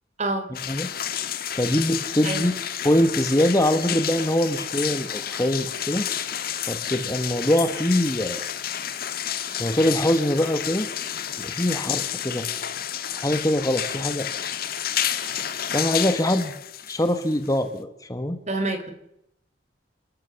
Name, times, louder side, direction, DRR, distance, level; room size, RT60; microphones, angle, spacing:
sound 1, 0.5-17.8, left 9 dB, 55° left, 1.5 m, -30 dB
voice 1, 1.5-2.5 2.8-6.1 6.7-8.4 9.6-10.9 11.4-12.5 13.1-14.3 15.7-16.5 16.9-18.4, left 1 dB, 20° left, 8 dB, 1.4 m, -23 dB
voice 2, 18.5-18.9, right 2 dB, 40° right, 8 dB, 3.5 m, -26 dB
29.5 x 13.5 x 7.2 m, 0.83 s
head